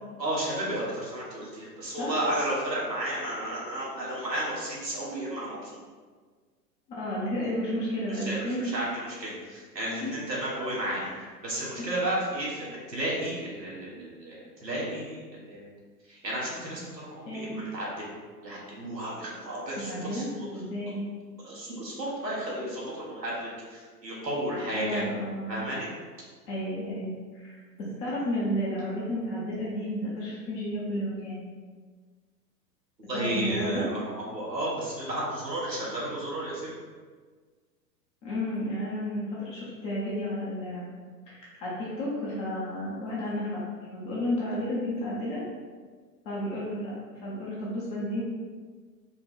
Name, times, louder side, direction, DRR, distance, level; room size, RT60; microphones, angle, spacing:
voice 1, 0.2-5.8 8.1-15.7 16.0-18.1 18.4-20.6 21.4-25.1 25.5-25.9 33.1-36.7, right 1 dB, 90° right, -6 dB, 1.4 m, -33 dB
voice 2, 6.9-8.9 10.0-10.1 11.0-11.2 17.3-17.5 19.9-20.3 20.5-21.0 24.7-25.6 26.5-31.4 33.1-33.9 38.2-40.8 41.3-43.6 43.9-45.4 46.3-48.2, equal, 15° left, -7 dB, 0.4 m, -32 dB
4.5 x 2.1 x 4.2 m, 1.5 s
figure-of-eight pair, 100°, 49 cm